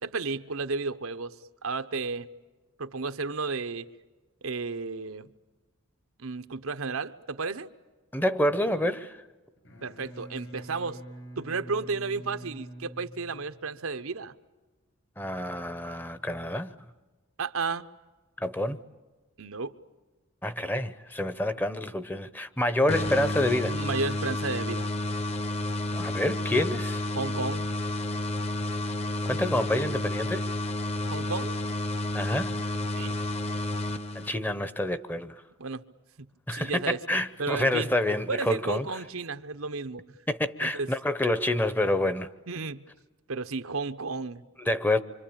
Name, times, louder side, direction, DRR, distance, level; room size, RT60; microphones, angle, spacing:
voice 1, 0.0-1.3 1.6-2.3 2.8-3.9 4.4-5.3 6.2-7.7 9.8-11.0 11.4-14.3 17.4-17.9 19.4-19.7 23.7-24.9 27.1-27.7 31.1-31.6 32.9-33.2 35.6-35.8 36.2-37.0 37.4-37.9 38.3-40.0 40.7-40.9 42.5-42.9 43.3-44.4, right 4 dB, 85° right, 1.0 m, -33 dB
voice 2, 8.1-9.2 15.2-16.7 18.4-18.8 20.4-23.8 25.9-27.0 29.2-30.5 32.1-32.6 34.1-35.4 36.5-38.9 40.3-42.3 44.6-45.0, left 1 dB, 10° left, 0.8 m, -28 dB
Bowed string instrument, 9.6-13.9, right 1 dB, 65° left, 6.6 m, -45 dB
sound 1, 22.9-34.6, left 1 dB, 30° left, 1.0 m, -31 dB
26.0 x 26.0 x 8.8 m
head